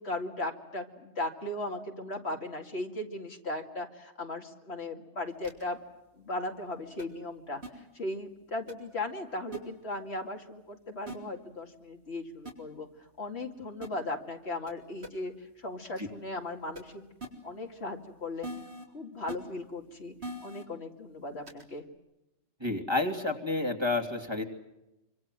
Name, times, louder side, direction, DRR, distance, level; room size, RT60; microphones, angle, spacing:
voice 1, 0.0-5.8 6.1-17.0 17.4-18.5 18.9-20.1 20.4-21.8, left 2 dB, 65° left, 4 dB, 2.7 m, -37 dB
sound 1, 5.4-5.6 7.0-7.1 7.6-7.7 8.7-8.8 9.5-9.6 11.1-11.2 12.4-12.5 13.8-13.9 14.7-14.8 15.0-15.1 16.7-16.8 17.2-17.3 18.4-18.8 19.3-19.4 20.2-20.6 21.5-21.6, right 1 dB, 60° right, 4.3 m, -40 dB
voice 2, 22.6-24.4, left 2 dB, 20° right, 3 dB, 2.9 m, -30 dB
26.0 x 25.5 x 7.6 m, 0.93 s
omnidirectional pair, 1.2 m